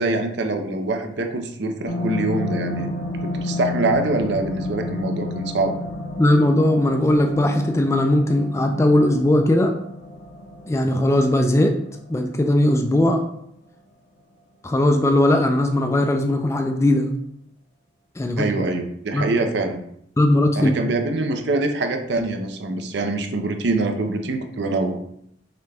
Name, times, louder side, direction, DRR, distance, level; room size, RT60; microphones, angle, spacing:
voice 1, 0.0-2.9 3.2-5.7 18.4-19.8 20.5-25.0, right 2 dB, 60° right, 4 dB, 0.5 m, -24 dB
sound 1, 1.9-12.7 13.1-13.2, left 2 dB, 55° left, 0.7 m, -31 dB
voice 2, 6.2-9.8 10.7-11.7 12.1-13.2 14.6-17.1 18.2-18.5 19.1-19.2 20.2-20.9, left 1 dB, 15° left, 4 dB, 0.3 m, -19 dB
5.9 x 2.2 x 3.4 m, 0.72 s
head